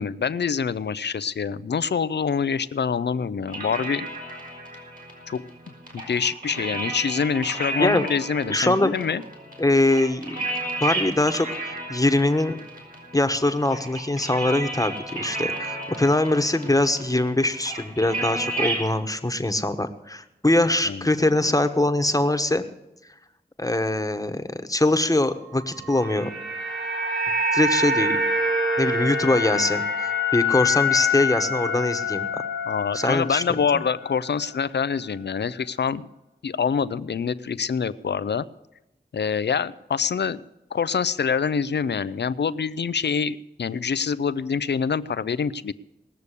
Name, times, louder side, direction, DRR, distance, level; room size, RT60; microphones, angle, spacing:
voice 1, 0.0-4.1 5.3-5.4 5.9-9.2 20.9-21.0 32.7-36.1 36.4-38.4 39.1-40.4 40.7-45.7, left 6 dB, 90° left, 17 dB, 0.5 m, -25 dB
sound 1, 3.5-18.9, right 2 dB, 55° right, 5.1 m, -33 dB
voice 2, 8.5-8.9 9.6-10.4 10.8-12.6 13.1-22.6 23.6-26.3 27.5-28.1 28.8-32.3 32.9-33.4, left 1 dB, 20° left, 8 dB, 1.2 m, -22 dB
sound 2, 25.8-34.1 34.4-34.6, left 2 dB, 80° right, 2.9 m, -25 dB
19.5 x 6.9 x 8.3 m, 0.92 s
cardioid pair, 40°, 17 cm